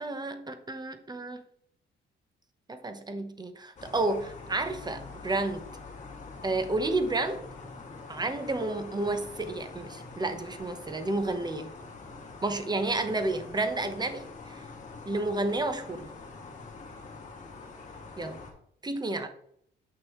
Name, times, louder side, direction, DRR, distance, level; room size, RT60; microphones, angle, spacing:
voice 1, 0.0-1.4 2.7-5.7 6.4-7.4 8.1-11.7 12.4-14.6 15.0-16.1 18.2-18.4 18.8-19.3, right 2 dB, 20° right, 8 dB, 1.1 m, -31 dB
sound 1, 3.8-18.5, left 3 dB, 35° left, 2.3 m, -45 dB
8.3 x 6.1 x 3.2 m, 0.67 s
cardioid pair, 90°, 20 cm